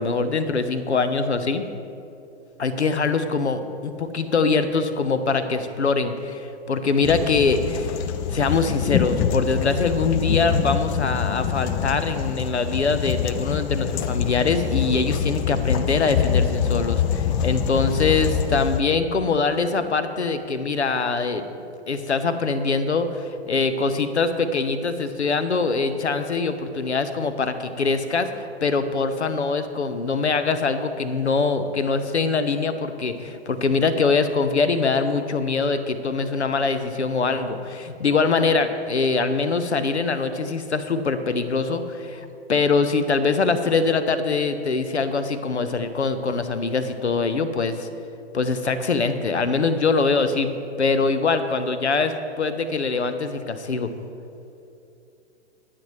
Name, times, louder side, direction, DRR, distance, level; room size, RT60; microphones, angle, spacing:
voice 1, 0.0-1.6 2.6-8.0 8.3-21.4 21.9-47.9 48.3-50.5 50.8-53.9, left 4 dB, 85° left, 10 dB, 0.9 m, -23 dB
sound 1, 7.0-18.8, left 8 dB, 30° left, 0.5 m, -25 dB
22.5 x 7.6 x 3.2 m, 2.8 s
figure-of-eight pair, 110°, 33 cm